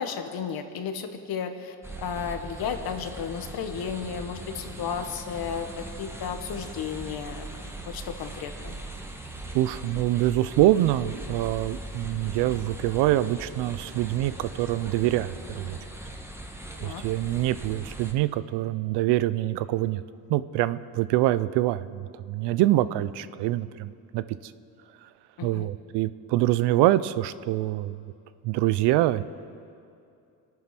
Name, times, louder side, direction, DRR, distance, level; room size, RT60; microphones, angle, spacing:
voice 1, 0.0-7.5 7.9-8.8 16.8-17.0 25.4-25.7, left 7 dB, 60° left, 7 dB, 1.6 m, -33 dB
sound 1, 1.8-18.1, right 1 dB, 5° right, 1.6 m, -40 dB
voice 2, 9.5-15.8 16.8-20.0 20.3-24.2 25.4-28.0 28.4-29.2, right 15 dB, 80° right, 15 dB, 0.7 m, -25 dB
25.0 x 9.4 x 6.0 m, 2.5 s
cardioid pair, 100°, 40 cm